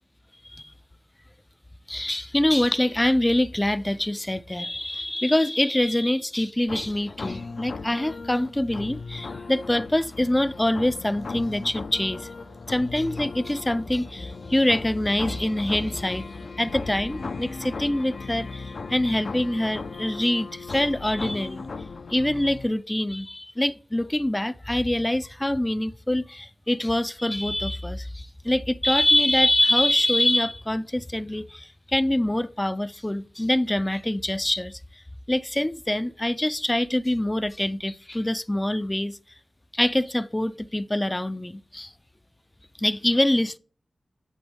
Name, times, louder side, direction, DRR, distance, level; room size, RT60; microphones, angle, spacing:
voice 1, 1.9-12.3 12.7-21.6 22.1-34.8 35.3-39.2 39.7-41.9 42.8-43.6, left 1 dB, 15° left, 0.5 m, -25 dB
sound 1, 6.7-22.7, left 4 dB, 65° left, 0.8 m, -37 dB
11.0 x 7.7 x 3.6 m
wide cardioid pair, 85°, 0 cm